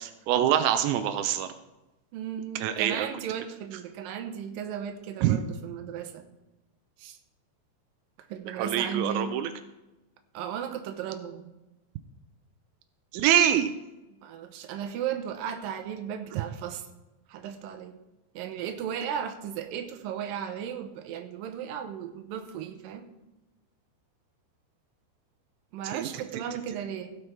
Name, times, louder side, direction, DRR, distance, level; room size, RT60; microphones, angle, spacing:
voice 1, 0.0-1.5 2.6-3.1 5.2-5.4 8.6-9.5 13.1-13.7 25.8-26.1, right 10 dB, 90° right, 9 dB, 2.1 m, -25 dB
voice 2, 2.1-6.2 7.0-7.2 8.2-9.4 10.3-11.5 14.2-16.8 17.3-17.9 18.3-23.1 25.7-27.1, right 8 dB, 70° right, 6 dB, 2.2 m, -35 dB
16.5 x 6.9 x 4.5 m, 1.0 s
omnidirectional pair, 5.1 m